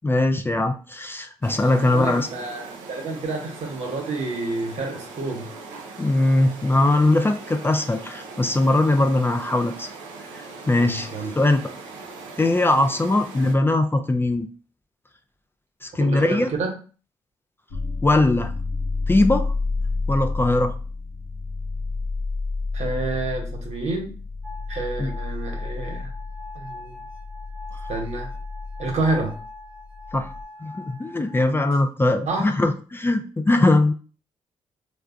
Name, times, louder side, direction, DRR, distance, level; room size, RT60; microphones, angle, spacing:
voice 1, 0.0-2.3 6.0-9.9 10.7-11.1 11.4-11.7 12.4-14.5 15.8-16.5 18.0-18.5 19.1-19.5 20.1-20.7 25.0-25.1 30.1-30.3 30.6-33.9, left 2 dB, 15° left, 7 dB, 0.4 m, -20 dB
sound 1, 1.4-13.5, right 4 dB, 90° right, 0.5 m, -40 dB
voice 2, 1.6-5.5 10.7-11.3 16.0-16.7 22.7-24.1 24.7-26.1 26.5-27.0 27.9-28.3 28.8-29.4 32.3-32.4, right 3 dB, 65° right, 2 dB, 0.9 m, -29 dB
sound 2, 17.7-30.4, left 3 dB, 80° left, 0.5 m, -30 dB
sound 3, 24.4-31.5, left 2 dB, 10° right, 1.0 m, -42 dB
3.3 x 2.0 x 2.4 m, 0.37 s
supercardioid pair, 50°, 13 cm